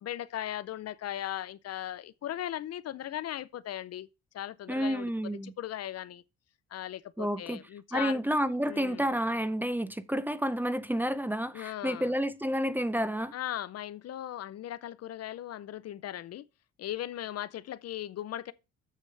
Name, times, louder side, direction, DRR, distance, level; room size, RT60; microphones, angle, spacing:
voice 1, 0.0-4.1 4.3-5.1 5.4-6.2 6.7-8.2 8.7-9.1 11.5-12.1 13.3-16.4 16.8-18.5, left 12 dB, 60° left, 0.5 m, -38 dB
voice 2, 4.7-5.5 7.2-7.6 7.9-13.3, equal, 5° right, 0.6 m, -30 dB
9.7 x 7.7 x 3.2 m
cardioid pair, 100°, 29 cm